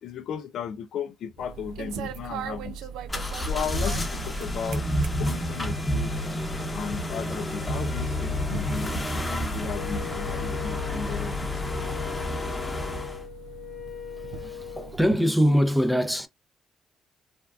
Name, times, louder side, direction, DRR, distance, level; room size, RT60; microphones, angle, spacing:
voice 1, 0.0-2.8 3.4-6.1 6.7-11.5, left 7 dB, 70° left, 0.3 m, -35 dB
sound 1, 1.4-15.2, right 8 dB, 85° right, 0.3 m, -41 dB
sound 2, 3.1-13.2, left 1 dB, 20° left, 0.9 m, -30 dB
Wind instrument woodwind instrument, 9.7-15.0, left 9 dB, 50° left, 1.1 m, -39 dB
voice 2, 14.1-16.3, equal, ahead, 0.5 m, -23 dB
3.4 x 2.2 x 2.3 m
cardioid pair, 90°, 0 cm